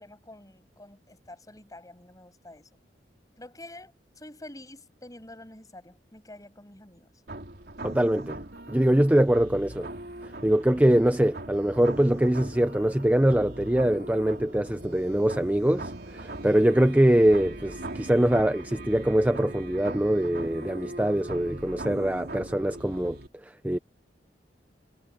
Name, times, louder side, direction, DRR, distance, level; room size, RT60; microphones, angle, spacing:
voice 1, 0.0-2.7 3.4-7.1 9.2-9.3, left 1 dB, 20° left, 7.4 m, -48 dB
sound 1, 7.3-23.3, right 1 dB, 65° right, 3.9 m, -40 dB
voice 2, 7.8-8.4 8.7-9.9 10.4-23.2 23.4-23.8, right 1 dB, 10° right, 0.6 m, -23 dB
head